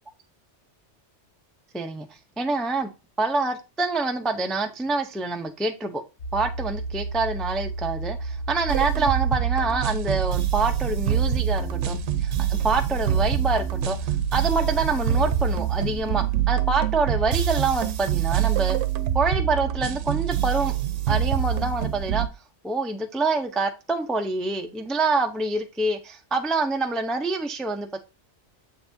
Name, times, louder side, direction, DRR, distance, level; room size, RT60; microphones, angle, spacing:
voice 1, 1.7-2.1 2.4-2.9 3.2-6.0 6.3-18.8 19.1-20.7 21.1-22.3 22.6-28.0, right 3 dB, ahead, 5 dB, 0.4 m, -26 dB
sound 1, 6.2-16.0, right 2 dB, 75° left, 1.3 m, -32 dB
sound 2, 8.7-22.3, right 10 dB, 80° right, 0.9 m, -25 dB
7.2 x 5.9 x 2.7 m, 0.28 s
omnidirectional pair, 1.2 m